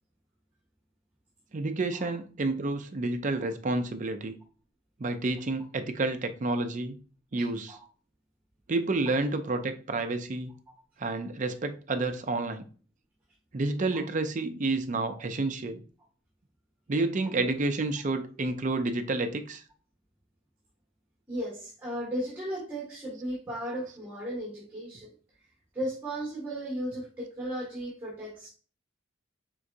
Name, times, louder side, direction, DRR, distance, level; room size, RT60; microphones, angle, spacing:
voice 1, 1.5-4.4 5.0-7.0 7.3-7.8 8.7-10.5 11.0-12.7 13.5-15.8 16.9-19.6 23.9-24.0, right 2 dB, 40° right, 0.5 m, -30 dB
voice 2, 7.4-7.8 9.1-9.2 13.9-14.0 21.3-25.1 25.7-28.5, equal, 10° right, 1.5 m, -35 dB
4.6 x 3.8 x 2.6 m
head